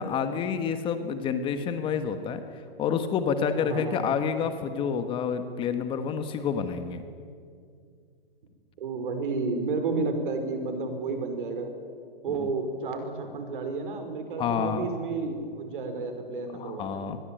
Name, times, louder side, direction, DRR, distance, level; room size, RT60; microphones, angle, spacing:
voice 1, 0.0-2.4 2.8-7.0 14.4-14.9 16.5-17.2, left 7 dB, 20° left, 9 dB, 1.3 m, -28 dB
voice 2, 3.6-4.1 8.8-11.7 12.2-17.1, right 3 dB, 60° right, 7 dB, 5.3 m, -31 dB
26.0 x 21.0 x 9.1 m, 2.2 s
hypercardioid pair, 155°, 29 cm